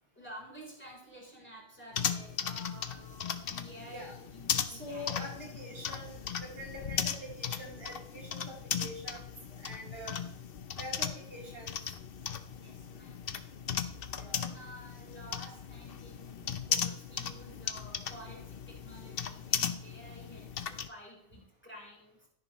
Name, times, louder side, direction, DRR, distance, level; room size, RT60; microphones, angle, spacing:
voice 1, 0.2-5.3 12.6-13.5 14.2-22.3, equal, 10° left, -3 dB, 3.7 m, -51 dB
sound 1, 1.9-20.9, left 7 dB, 65° left, 0.9 m, -37 dB
voice 2, 4.7-10.2 10.8-11.8 14.2-14.5, equal, 70° right, -3 dB, 3.8 m, -45 dB
13.0 x 10.5 x 3.1 m, 0.75 s
omnidirectional pair, 1.0 m